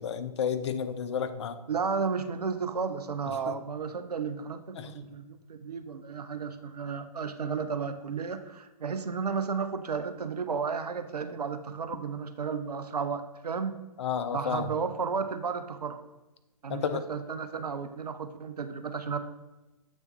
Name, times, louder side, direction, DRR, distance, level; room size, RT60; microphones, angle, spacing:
voice 1, 0.0-1.6 3.5-3.6 4.8-4.9 14.0-14.7 16.7-17.0, left 7 dB, 45° left, 11 dB, 0.5 m, -31 dB
voice 2, 1.7-13.7 14.3-16.0 16.6-19.2, right 5 dB, 75° right, 9 dB, 0.6 m, -33 dB
7.3 x 3.4 x 4.0 m, 1.1 s
figure-of-eight pair, 125°, 20 cm